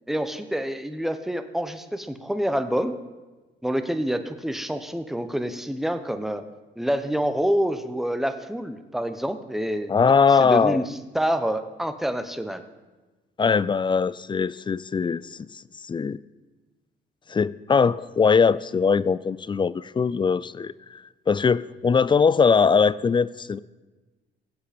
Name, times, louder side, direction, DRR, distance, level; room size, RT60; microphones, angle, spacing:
voice 1, 0.1-3.0 3.6-6.4 6.8-12.6, equal, ahead, 9 dB, 0.8 m, -27 dB
voice 2, 9.9-10.9 13.4-16.2 17.3-23.6, left 5 dB, 25° left, 18 dB, 0.3 m, -21 dB
17.0 x 7.8 x 4.3 m, 1.2 s
cardioid pair, 90°, 20 cm